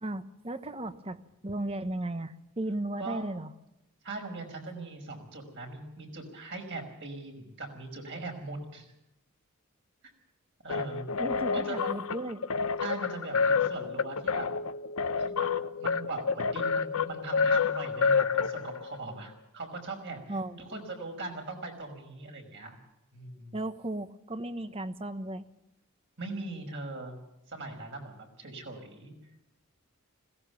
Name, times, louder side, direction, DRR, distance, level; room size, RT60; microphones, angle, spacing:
voice 1, 0.0-3.5 11.2-12.4 20.3-20.8 23.5-25.5, right 1 dB, 25° right, 11 dB, 1.1 m, -35 dB
voice 2, 3.0-3.3 4.0-8.9 10.6-11.1 11.5-11.9 12.8-14.5 15.3-15.5 15.8-22.8 23.1-23.6 26.2-27.2 27.5-29.1, right 2 dB, 55° right, 3 dB, 5.5 m, -40 dB
sound 1, 10.7-19.0, left 5 dB, 70° left, 0.8 m, -29 dB
21.0 x 17.5 x 7.0 m, 0.89 s
head